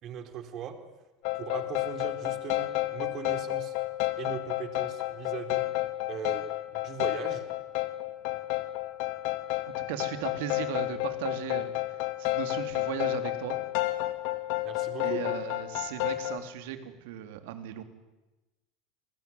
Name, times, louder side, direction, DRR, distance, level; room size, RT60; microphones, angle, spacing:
voice 1, 0.0-0.7 1.3-3.7 4.2-5.7 6.1-6.4 6.7-7.4 14.6-15.2, right 9 dB, 45° right, 7 dB, 4.2 m, -39 dB
sound 1, 1.2-16.4, left 18 dB, 65° left, 2.5 m, -31 dB
voice 2, 9.9-13.6 15.0-17.8, right 10 dB, 70° right, 8 dB, 3.3 m, -37 dB
30.0 x 21.0 x 9.6 m, 1.1 s
hypercardioid pair, 85°, 0 cm